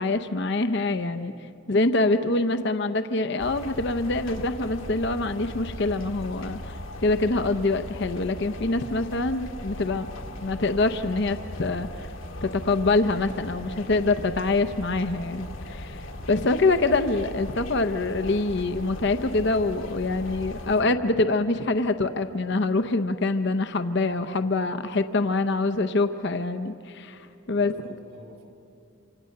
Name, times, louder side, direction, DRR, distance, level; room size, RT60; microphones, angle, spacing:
voice 1, 0.0-1.3 1.7-6.8 7.0-10.1 10.4-12.1 12.4-27.7, left 2 dB, 55° left, 10 dB, 0.8 m, -25 dB
sound 1, 3.4-20.8, left 1 dB, 70° left, 1.8 m, -38 dB
voice 2, 27.5-28.4, left 1 dB, 90° right, 1 dB, 4.4 m, -49 dB
27.0 x 25.5 x 6.6 m, 2.6 s
head